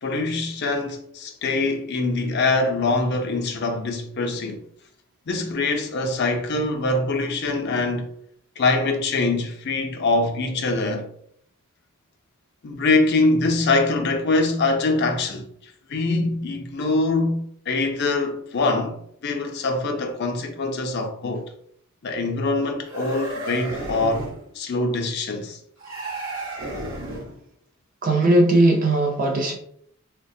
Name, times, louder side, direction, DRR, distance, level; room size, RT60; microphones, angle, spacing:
voice 1, 0.0-4.6 5.3-8.1 8.6-11.1 12.6-15.4 15.9-17.4 17.7-19.0 19.2-21.5 22.0-24.3 24.5-25.6, left 3 dB, 50° left, 0.5 m, -23 dB
sound 1, 22.8-24.4 25.8-27.4, right 2 dB, 65° right, 0.9 m, -32 dB
voice 2, 28.0-29.6, right 2 dB, 40° right, 0.4 m, -18 dB
3.8 x 2.1 x 2.6 m
head